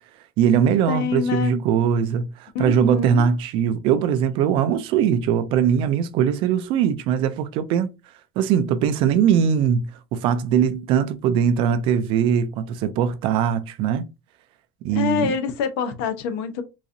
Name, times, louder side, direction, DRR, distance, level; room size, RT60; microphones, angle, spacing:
voice 1, 0.4-7.9 8.4-14.1 14.8-15.3, right 8 dB, 45° right, 0.4 m, -21 dB
voice 2, 0.9-1.6 2.5-3.3 14.9-16.6, left 6 dB, 75° left, 0.7 m, -25 dB
3.9 x 2.5 x 2.6 m
cardioid pair, 180°, 12 cm